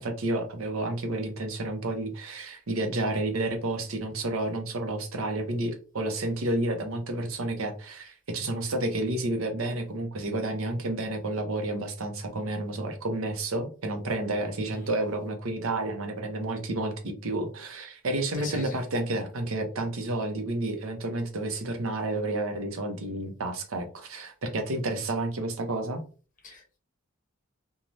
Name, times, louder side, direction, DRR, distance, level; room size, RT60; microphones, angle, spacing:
voice 1, 0.0-26.0, right 2 dB, 80° right, 0.7 m, -30 dB
voice 2, 18.4-18.8 26.4-26.8, left 1 dB, 40° left, 0.8 m, -39 dB
2.6 x 2.3 x 3.1 m
head